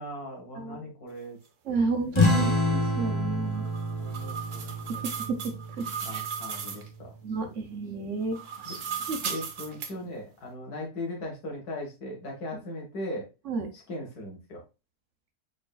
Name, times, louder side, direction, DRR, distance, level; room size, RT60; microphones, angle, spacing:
voice 1, 0.0-1.4 1.7-1.8 2.3-2.8 4.0-5.3 6.0-7.1 7.4-7.5 8.7-8.8 9.3-13.3 13.7-14.6, left 1 dB, 85° left, 0 dB, 2.3 m, -39 dB
voice 2, 0.6-0.9 1.6-3.7 4.9-6.2 7.2-8.8 9.1-9.4 13.5-13.7, right 4 dB, 55° right, 5 dB, 1.1 m, -32 dB
sound 1, 2.1-7.2, left 1 dB, 25° left, 0.8 m, -28 dB
sound 2, 3.5-6.9 8.2-9.9, right 7 dB, 85° right, 1.4 m, -36 dB
4.9 x 4.5 x 2.4 m, 0.27 s
omnidirectional pair, 1.6 m